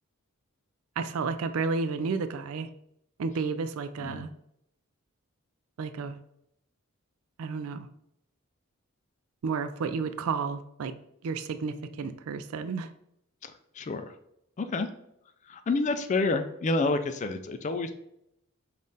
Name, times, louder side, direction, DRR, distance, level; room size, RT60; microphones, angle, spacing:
voice 1, 1.0-2.7 3.2-4.3 5.8-6.2 7.4-7.9 9.4-10.9 11.2-12.9, right 4 dB, 75° right, 10 dB, 0.4 m, -31 dB
voice 2, 13.4-14.1 14.6-14.9 15.5-17.9, left 3 dB, 35° left, 9 dB, 0.4 m, -29 dB
5.4 x 2.5 x 3.9 m, 0.78 s
head